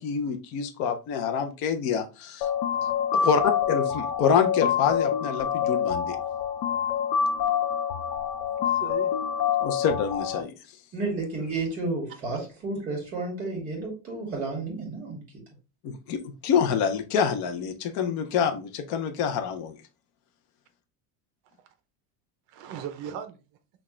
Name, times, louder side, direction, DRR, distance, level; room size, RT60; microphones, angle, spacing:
voice 1, 0.0-2.5 3.1-3.4 3.7-6.2 9.6-10.5 15.8-19.8, left 7 dB, 40° left, 0.5 m, -26 dB
sound 1, 2.4-10.4, left 8 dB, 85° left, 0.7 m, -26 dB
voice 2, 3.2-3.5 7.4-7.5 8.1-9.1 22.5-23.4, right 8 dB, 40° right, 0.6 m, -39 dB
voice 3, 10.9-15.2, right 3 dB, 20° right, 2.2 m, -31 dB
5.8 x 2.4 x 3.1 m
cardioid pair, 165°, 47 cm